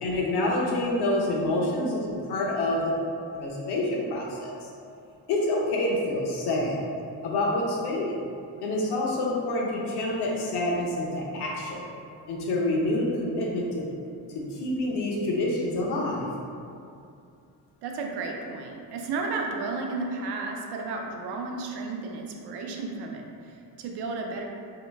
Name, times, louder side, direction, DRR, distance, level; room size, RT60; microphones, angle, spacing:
voice 1, 0.0-2.0 2.3-2.9 3.4-4.5 5.3-6.9 7.2-8.1 8.6-11.8 12.3-13.9 14.3-16.3, left 1 dB, 75° left, -3 dB, 0.8 m, -27 dB
voice 2, 1.3-1.7 17.8-24.4, right 3 dB, 75° right, 1 dB, 0.5 m, -33 dB
2.8 x 2.2 x 3.3 m, 2.5 s
cardioid pair, 105°, 40 cm